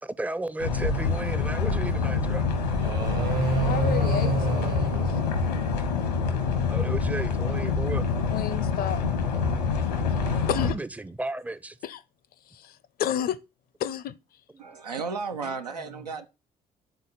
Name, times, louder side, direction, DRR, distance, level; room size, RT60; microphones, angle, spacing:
voice 1, 0.0-2.4 6.7-8.1 10.6-11.8 14.6-14.7, right 2 dB, 5° right, 0.5 m, -34 dB
sound 1, 0.6-10.7, left 5 dB, 80° left, 1.1 m, -26 dB
sound 2, 2.7-6.0, right 4 dB, 50° right, 1.1 m, -29 dB
voice 2, 3.6-5.1 8.3-9.0 10.5-10.8 11.8-12.0 12.5-13.4 13.8-14.1, left 10 dB, 50° left, 0.6 m, -31 dB
voice 3, 14.6-16.3, right 5 dB, 85° right, 0.5 m, -33 dB
9.3 x 3.9 x 4.1 m
figure-of-eight pair, 45°, 20 cm